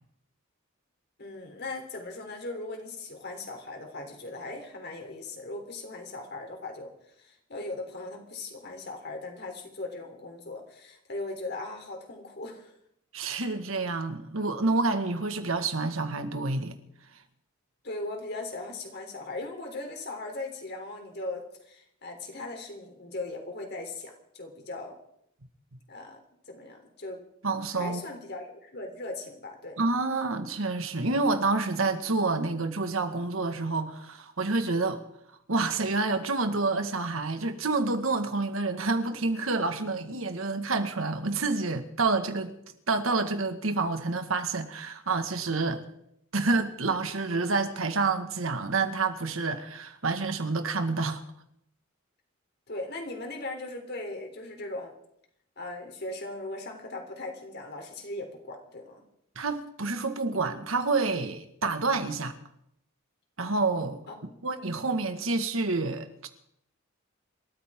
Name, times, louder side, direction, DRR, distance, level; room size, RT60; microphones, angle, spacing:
voice 1, 1.2-6.9 7.2-12.7 17.8-25.0 25.9-26.2 26.5-27.2 27.7-29.8 52.7-54.9 55.6-59.0 64.1-64.4, left 2 dB, 55° left, 3.5 m, -39 dB
voice 2, 13.1-16.7 27.4-28.0 29.8-35.0 35.5-42.6 42.9-45.8 46.3-51.2 59.4-62.3 63.4-64.0 64.4-66.3, right 3 dB, 85° right, 1.8 m, -28 dB
27.0 x 14.0 x 3.8 m
head